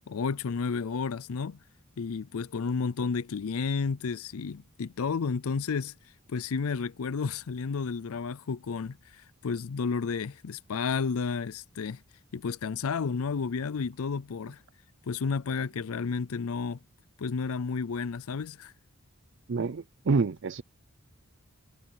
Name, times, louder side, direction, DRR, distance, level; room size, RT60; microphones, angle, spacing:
voice 1, 0.1-1.6 2.0-5.9 6.3-12.0 12.3-14.6 15.1-16.8 17.2-18.7, left 5 dB, 75° left, 0.5 m, -31 dB
voice 2, 19.5-20.6, right 4 dB, 55° right, 0.4 m, -27 dB
head